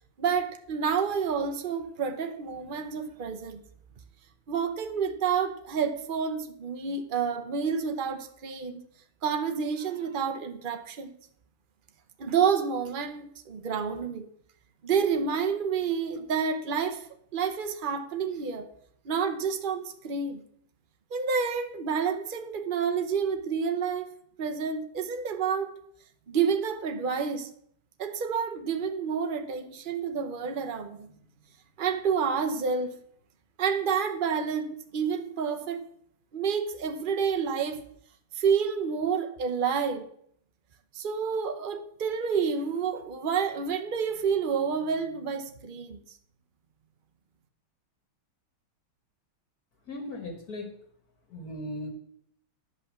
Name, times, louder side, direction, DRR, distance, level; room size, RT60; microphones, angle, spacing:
voice 1, 0.2-3.6 4.5-8.8 9.2-11.1 12.2-14.3 14.8-17.1 17.3-18.7 19.0-20.4 21.1-24.1 24.4-25.7 26.3-27.5 28.0-31.1 31.8-33.0 33.6-35.8 36.3-37.8 38.3-40.1 40.9-46.0, right 6 dB, 85° right, 0.4 m, -29 dB
voice 2, 49.9-50.7 51.3-51.9, left 1 dB, 50° left, 2.3 m, -37 dB
10.5 x 5.5 x 7.4 m
omnidirectional pair, 2.2 m